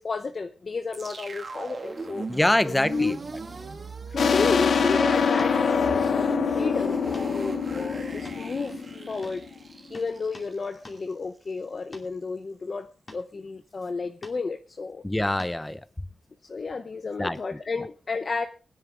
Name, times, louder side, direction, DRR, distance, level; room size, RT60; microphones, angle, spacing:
voice 1, 0.0-2.3 2.6-3.2 4.1-9.4 9.9-15.0 16.4-18.5, left 4 dB, 45° left, 8 dB, 0.8 m, -32 dB
sound 1, 0.9-11.1, right 3 dB, 40° right, 1.8 m, -38 dB
voice 2, 2.3-3.1 15.0-15.8 17.2-17.6, left 1 dB, 10° left, 14 dB, 0.8 m, -25 dB
sound 2, 4.2-9.5, left 6 dB, 70° left, 1.0 m, -25 dB
sound 3, 4.5-4.7 5.4-5.6 7.1-7.3 7.6-7.7 8.2-8.9 9.2-9.4 9.9-10.5 10.8-11.0 11.9-12.1 13.1-13.3 14.2-14.4 15.4-15.6 17.3-17.4, left 2 dB, 30° left, 2.5 m, -46 dB
21.0 x 9.8 x 3.5 m, 0.35 s
wide cardioid pair, 115°, 0 cm